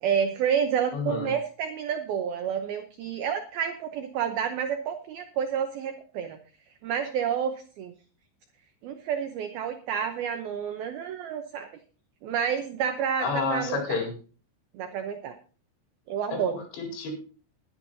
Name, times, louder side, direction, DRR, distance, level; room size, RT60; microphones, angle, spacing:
voice 1, 0.0-6.4 6.8-7.9 8.8-11.7 12.2-14.0 14.7-15.3 16.1-16.6, right 8 dB, 85° right, 7 dB, 2.1 m, -29 dB
voice 2, 0.9-1.3 13.2-14.1 16.3-17.2, left 4 dB, 60° left, 1 dB, 6.3 m, -30 dB
21.0 x 10.5 x 2.8 m, 0.37 s
omnidirectional pair, 5.8 m